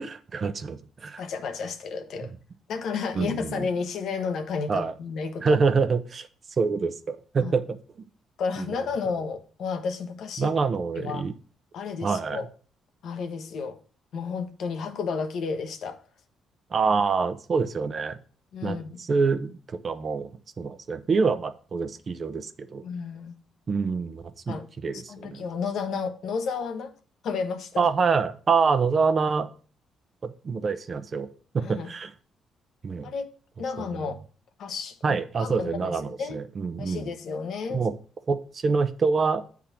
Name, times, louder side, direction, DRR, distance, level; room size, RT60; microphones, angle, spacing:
voice 1, 0.0-1.2 3.1-3.7 4.7-4.9 5.4-6.3 6.6-7.8 8.6-8.7 10.4-11.3 12.0-12.4 16.7-18.2 18.6-20.3 20.6-22.8 23.7-24.6 24.8-25.4 27.8-29.5 30.2-31.3 31.5-32.1 32.8-33.1 33.8-33.9 35.0-37.1 37.7-37.9 38.3-39.4, right 5 dB, 45° right, 0.7 m, -26 dB
voice 2, 1.2-2.3 2.7-5.6 7.4-7.5 8.4-10.5 11.0-11.3 11.7-12.5 13.0-13.8 14.1-16.0 18.5-19.0 22.8-23.3 24.5-24.7 24.9-26.9 27.2-27.9 31.6-31.9 33.0-33.3 33.6-34.2 34.6-36.4 36.8-37.9, left 5 dB, 70° left, 0.9 m, -32 dB
8.6 x 3.6 x 5.9 m
cardioid pair, 90°, 0 cm